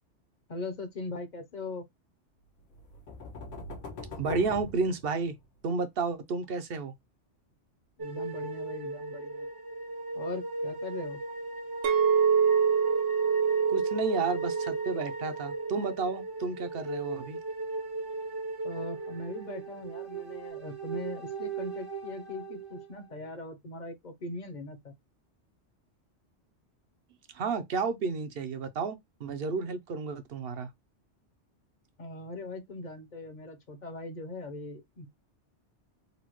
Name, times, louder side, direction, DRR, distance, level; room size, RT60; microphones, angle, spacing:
voice 1, 0.5-1.8 8.0-9.5 10.1-11.2 18.6-24.9 32.0-35.1, left 2 dB, 45° left, 0.7 m, -40 dB
sound 1, 2.7-5.6, left 3 dB, 85° left, 1.4 m, -42 dB
voice 2, 4.2-5.3 5.6-6.9 13.7-17.4 27.3-30.7, right 4 dB, 60° right, 0.8 m, -31 dB
sound 2, 8.0-23.1, right 2 dB, 25° right, 0.6 m, -37 dB
Chink clink, 11.8-16.2 16.7-17.0, right 7 dB, 90° right, 1.0 m, -27 dB
4.1 x 2.2 x 3.0 m
omnidirectional pair, 1.2 m